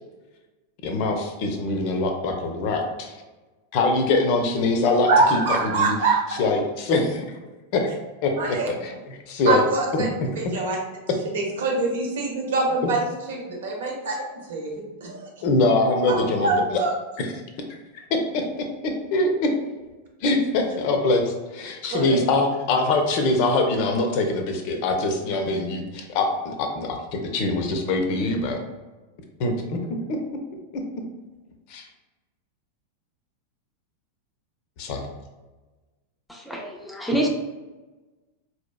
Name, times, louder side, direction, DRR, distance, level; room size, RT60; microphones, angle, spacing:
voice 1, 0.8-3.1 3.7-5.9 6.4-7.2 7.7-7.9 8.2-9.6 10.2-10.3 15.4-16.8 17.2-17.3 18.1-19.5 20.2-28.6 29.4-29.8 30.1-30.2 30.7-30.8 31.7-31.9 34.8-35.1, left 2 dB, 45° left, 4 dB, 0.6 m, -23 dB
voice 2, 5.1-6.4 8.3-8.7 9.5-10.1 10.4-10.8 11.2-15.2 16.1-16.9 21.9-22.2, right 3 dB, 60° right, -1 dB, 0.9 m, -24 dB
voice 3, 36.3-37.4, right 1 dB, 5° left, 0 dB, 0.6 m, -26 dB
4.3 x 2.8 x 2.2 m, 1.2 s
figure-of-eight pair, 90°, 0 cm